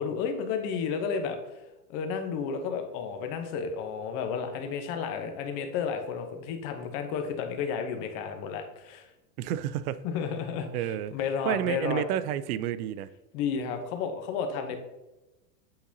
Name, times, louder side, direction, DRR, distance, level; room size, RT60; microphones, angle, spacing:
voice 1, 0.0-1.4 1.9-9.1 10.0-10.7 11.1-12.0 13.3-14.8, left 6 dB, 40° left, 0.9 m, -32 dB
voice 2, 9.4-10.0 10.7-11.1 11.4-13.1, right 10 dB, 70° right, 0.5 m, -30 dB
8.6 x 4.0 x 2.7 m
supercardioid pair, 145°, 48 cm